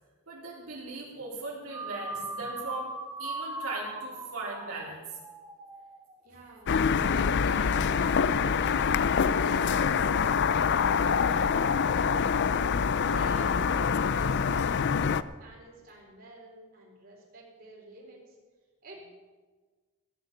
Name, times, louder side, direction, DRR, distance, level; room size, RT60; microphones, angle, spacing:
voice 1, 0.3-2.9 3.2-5.2, right 2 dB, 70° right, -4 dB, 3.6 m, -38 dB
sound 1, 1.7-6.2, right 2 dB, 20° right, 2.2 m, -39 dB
voice 2, 6.2-6.8 7.1-12.4 13.0-14.9 15.3-18.4 18.8-19.0, right 2 dB, 40° right, -3 dB, 4.0 m, -48 dB
sound 2, 6.7-15.2, left 6 dB, 50° left, 0.5 m, -25 dB
15.0 x 10.5 x 6.8 m, 1.3 s
head